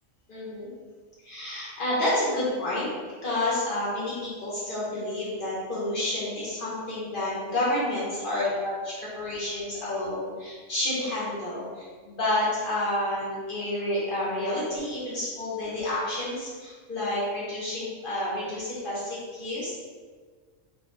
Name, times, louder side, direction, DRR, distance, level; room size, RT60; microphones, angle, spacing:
voice 1, 0.3-0.7 1.2-2.9 3.2-19.7, left 1 dB, 55° left, -8 dB, 0.7 m, -29 dB
2.3 x 2.1 x 2.9 m, 1.5 s
omnidirectional pair, 1.3 m